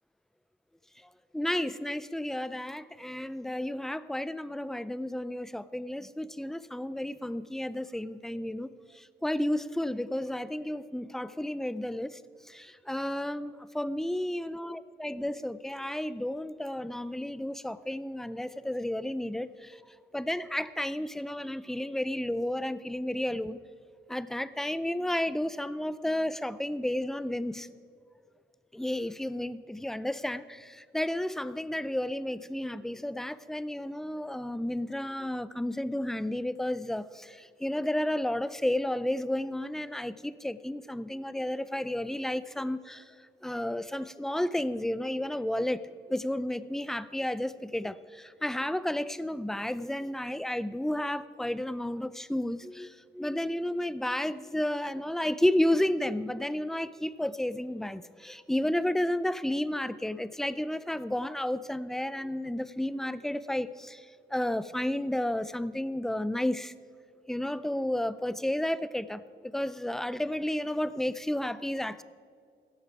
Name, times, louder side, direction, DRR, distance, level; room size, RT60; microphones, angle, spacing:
voice 1, 1.3-12.2 12.5-19.8 20.1-23.6 24.1-27.7 28.7-43.1 43.4-64.1 64.3-66.7 67.3-72.0, left 1 dB, ahead, 15 dB, 0.4 m, -32 dB
15.5 x 12.0 x 4.7 m, 2.3 s
wide cardioid pair, 130°, 20 cm